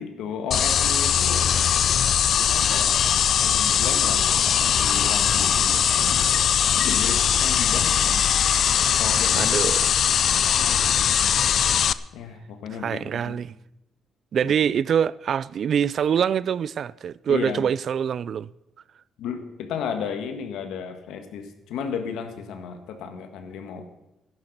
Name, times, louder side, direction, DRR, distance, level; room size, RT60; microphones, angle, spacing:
voice 1, 0.0-1.6 2.5-6.2 6.7-8.2 9.0-9.6 10.5-11.0 12.1-13.4 14.4-14.5 17.3-17.6 19.2-23.9, left 7 dB, 85° left, 1.6 m, -34 dB
sound 1, 0.5-11.9, left 8 dB, 60° left, 0.4 m, -21 dB
voice 2, 9.3-9.9 12.8-13.5 14.3-18.5, right 8 dB, 60° right, 0.4 m, -24 dB
12.0 x 11.0 x 6.6 m
cardioid pair, 90°, 0 cm